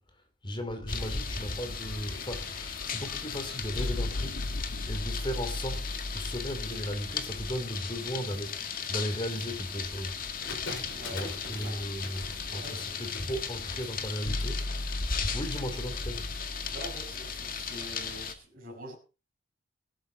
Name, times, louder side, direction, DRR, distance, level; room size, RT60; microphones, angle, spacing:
voice 1, 0.4-4.4 4.9-10.3 11.1-14.9 15.3-16.3, equal, 25° left, 3.2 m, -36 dB
sound 1, 0.7-8.0 14.2-18.3, left 1 dB, 90° left, 0.9 m, -38 dB
sound 2, 0.9-18.3, left 6 dB, 45° left, 2.0 m, -37 dB
sound 3, 10.4-14.3, left 2 dB, 65° left, 5.6 m, -43 dB
voice 2, 10.9-11.8 12.5-12.8 16.7-19.0, right 1 dB, 45° right, 6.3 m, -45 dB
19.5 x 12.5 x 4.1 m
head